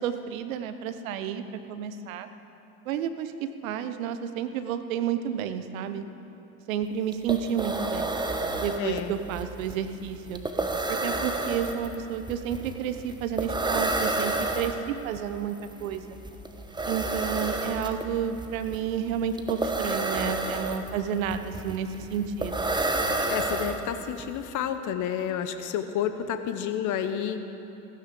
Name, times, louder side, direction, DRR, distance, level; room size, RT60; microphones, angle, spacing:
voice 1, 0.0-1.4 1.7-2.3 2.9-3.3 3.6-6.0 6.7-8.1 8.6-10.4 10.9-16.2 16.9-22.8, right 8 dB, 75° right, 10 dB, 0.9 m, -31 dB
sound 1, 6.8-6.9 7.1-24.2, right 2 dB, 10° right, 1.1 m, -30 dB
voice 2, 8.8-9.1 23.3-27.4, left 9 dB, 45° left, 9 dB, 0.9 m, -30 dB
15.5 x 15.5 x 3.9 m, 2.9 s
hypercardioid pair, 65°, 42 cm